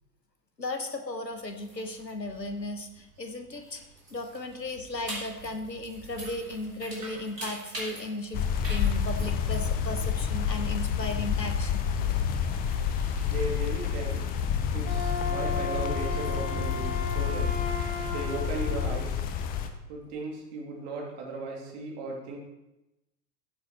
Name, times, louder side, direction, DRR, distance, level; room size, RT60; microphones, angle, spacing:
voice 1, 0.6-3.8 4.1-11.9 20.1-20.2, left 2 dB, 85° left, 7 dB, 1.2 m, -36 dB
sound 1, 1.3-18.9, right 1 dB, 80° right, 3.4 m, -47 dB
sound 2, 8.3-19.7, left 7 dB, 20° left, 0.6 m, -29 dB
voice 2, 13.3-14.2 14.7-17.6 18.1-19.2 19.9-22.4, right 3 dB, 40° right, -1 dB, 2.6 m, -36 dB
Wind instrument woodwind instrument, 14.8-18.9, left 3 dB, 50° left, 1.6 m, -35 dB
15.5 x 8.0 x 3.0 m, 0.93 s
figure-of-eight pair, 90°, 48 cm